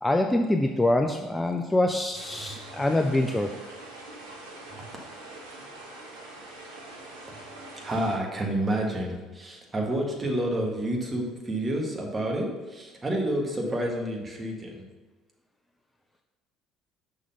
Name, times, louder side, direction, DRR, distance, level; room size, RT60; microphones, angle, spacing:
voice 1, 0.0-3.5, left 1 dB, 10° left, 4 dB, 0.5 m, -25 dB
sound 1, 2.1-8.2, right 2 dB, 85° right, 1.0 m, -44 dB
voice 2, 7.8-14.8, right 1 dB, 25° right, 0 dB, 1.5 m, -29 dB
6.1 x 3.9 x 5.4 m, 1.3 s
hypercardioid pair, 55°, 0 cm